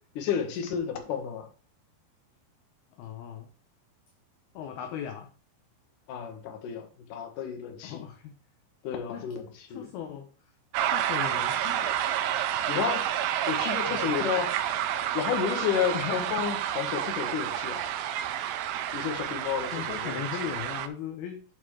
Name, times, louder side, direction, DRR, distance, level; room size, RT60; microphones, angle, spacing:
voice 1, 0.1-1.5 6.1-8.0 8.8-9.9 12.7-13.1 13.5-14.5 15.1-17.8 18.9-20.2, left 8 dB, 60° left, 2.5 m, -31 dB
voice 2, 2.9-3.5 4.5-5.3 7.8-8.3 9.1-9.3 9.7-10.5 10.8-12.0 13.9-14.1 15.9-16.3 19.7-21.4, left 9 dB, 75° left, 2.4 m, -38 dB
sound 1, 10.7-20.9, right 11 dB, 80° right, 2.9 m, -30 dB
8.9 x 7.4 x 3.3 m
omnidirectional pair, 5.4 m